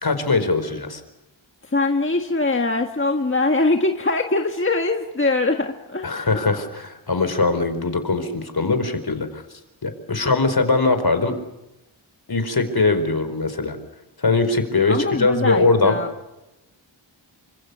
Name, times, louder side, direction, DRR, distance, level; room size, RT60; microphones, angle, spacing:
voice 1, 0.0-1.0 6.0-9.4 9.8-11.3 12.3-13.8 14.2-16.0, left 3 dB, 50° left, 9 dB, 4.6 m, -21 dB
voice 2, 1.6-6.3 14.9-16.1, left 2 dB, 25° left, 4 dB, 1.7 m, -22 dB
29.0 x 25.5 x 6.9 m, 0.95 s
wide cardioid pair, 105°, 48 cm